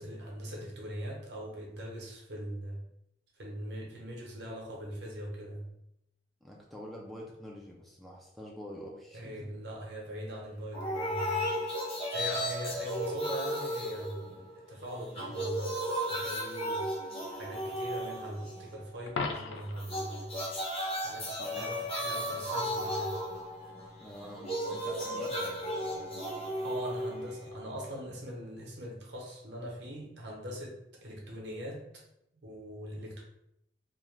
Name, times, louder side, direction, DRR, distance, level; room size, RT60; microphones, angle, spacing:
voice 1, 0.0-2.8 3.4-5.7 9.1-11.6 12.1-20.4 21.0-23.2 26.6-32.0 32.3-33.2, equal, 65° right, -2 dB, 0.8 m, -41 dB
voice 2, 6.4-9.5 21.4-21.7 24.0-25.6, equal, ahead, -3 dB, 0.3 m, -46 dB
sound 1, 10.7-14.7 15.0-18.8 19.8-27.8, equal, 35° left, 0.9 m, -35 dB
Coin (dropping), 19.1-19.9 26.0-26.2, left 4 dB, 90° left, 0.3 m, -36 dB
2.4 x 2.1 x 3.1 m, 0.79 s
head